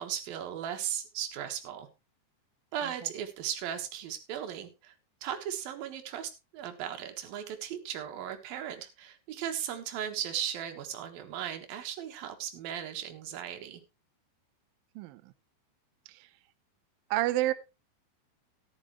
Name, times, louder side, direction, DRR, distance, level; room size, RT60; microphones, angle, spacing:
voice 1, 0.0-1.9 2.7-4.9 5.2-13.8, right 9 dB, 65° right, 5 dB, 3.0 m, -37 dB
voice 2, 15.0-15.3 16.1-16.3 17.1-17.5, right 16 dB, 90° right, 12 dB, 2.0 m, -30 dB
13.5 x 11.0 x 3.1 m, 0.26 s
omnidirectional pair, 5.0 m